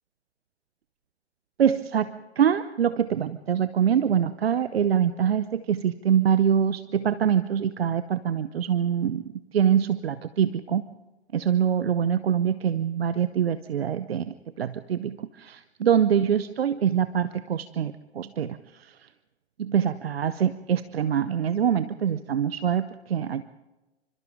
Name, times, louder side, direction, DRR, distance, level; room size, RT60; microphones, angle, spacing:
voice 1, 1.6-9.2 9.5-10.8 11.3-18.6 19.6-23.4, right 8 dB, 65° right, 14 dB, 0.9 m, -24 dB
28.0 x 25.5 x 3.8 m, 1.1 s
figure-of-eight pair, 110°, 33 cm